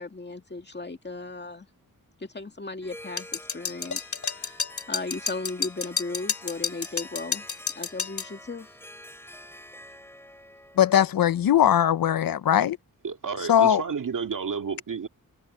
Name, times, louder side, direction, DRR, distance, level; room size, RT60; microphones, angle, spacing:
voice 1, 0.0-1.7 2.2-4.0 4.3-7.5 7.7-8.7, left 3 dB, 30° left, 2.3 m, -36 dB
Harp, 2.8-11.6, left 1 dB, 5° left, 6.8 m, -47 dB
sound 1, 3.2-8.3, left 5 dB, 55° left, 2.4 m, -30 dB
voice 2, 10.8-12.8 13.5-13.8, left 10 dB, 80° left, 0.7 m, -20 dB
voice 3, 13.0-15.1, right 6 dB, 65° right, 2.1 m, -31 dB
wide cardioid pair, 115°, 35 cm